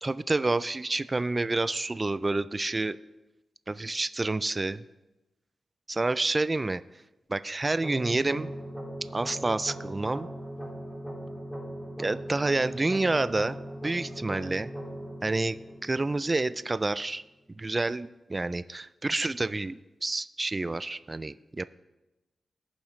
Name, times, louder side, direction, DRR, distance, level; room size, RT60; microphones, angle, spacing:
voice 1, 0.0-3.0 3.7-4.8 5.9-6.8 7.3-8.5 9.1-10.3 12.0-13.6 13.8-14.7 15.2-15.6 15.8-17.2 17.6-21.7, right 2 dB, 25° right, 14 dB, 0.3 m, -28 dB
sound 1, 7.8-16.8, right 1 dB, 5° left, 3.5 m, -39 dB
18.5 x 7.2 x 3.2 m, 1.0 s
wide cardioid pair, 115°, 0 cm